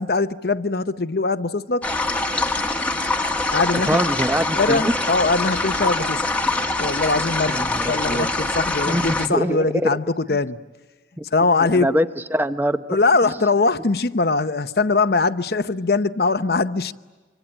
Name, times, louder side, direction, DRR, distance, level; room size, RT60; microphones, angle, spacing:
voice 1, 0.0-1.9 3.5-4.0 4.6-6.2 6.8-10.6 11.3-11.9 12.9-16.9, left 3 dB, 60° left, 0.8 m, -21 dB
sound 1, 1.8-9.3, left 2 dB, 10° left, 1.3 m, -24 dB
voice 2, 3.9-4.9 7.5-8.3 8.9-9.7 10.3-10.4 11.2-11.3 11.6-12.8, equal, 10° right, 0.8 m, -23 dB
25.5 x 25.5 x 9.0 m
head